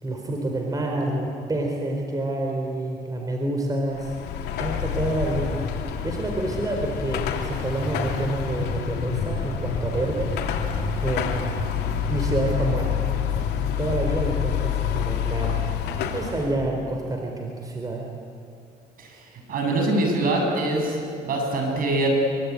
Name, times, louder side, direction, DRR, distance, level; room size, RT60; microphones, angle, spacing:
voice 1, 0.0-4.2 4.6-5.5 6.0-10.6 11.0-11.6 12.1-13.1 13.6-15.6 16.0-18.0, right 2 dB, 20° right, 1 dB, 4.1 m, -28 dB
Car passing by / Traffic noise roadway noise / Engine, 3.9-16.5, left 7 dB, 75° left, 3.1 m, -27 dB
voice 2, 19.0-22.1, right 2 dB, 55° right, 2 dB, 7.8 m, -24 dB
24.5 x 24.5 x 9.8 m, 2.4 s
cardioid pair, 110°, 17 cm